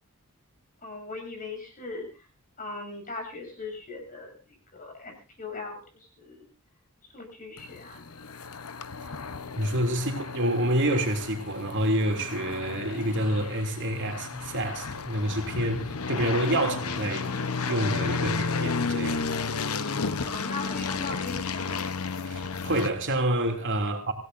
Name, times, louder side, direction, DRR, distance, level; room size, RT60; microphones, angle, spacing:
voice 1, 0.8-2.1 2.6-4.3 4.7-6.5 7.1-8.0 20.2-21.8, left 3 dB, 40° left, 7.2 m, -39 dB
sound 1, 7.6-22.9, left 4 dB, 80° left, 1.0 m, -33 dB
voice 2, 9.5-17.3 17.7-19.3 22.3-24.1, right 1 dB, 55° right, 2.9 m, -28 dB
25.5 x 16.5 x 2.7 m
head